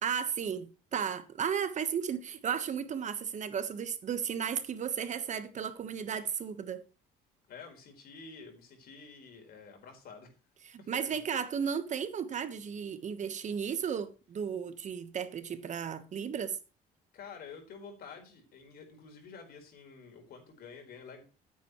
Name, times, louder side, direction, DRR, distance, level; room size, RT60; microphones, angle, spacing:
voice 1, 0.0-6.8 10.6-16.6, right 7 dB, 45° right, 1.3 m, -34 dB
voice 2, 7.5-10.3 10.8-11.2 17.1-21.2, left 5 dB, 65° left, 4.6 m, -49 dB
14.5 x 8.4 x 3.2 m
cardioid pair, 110°, 17 cm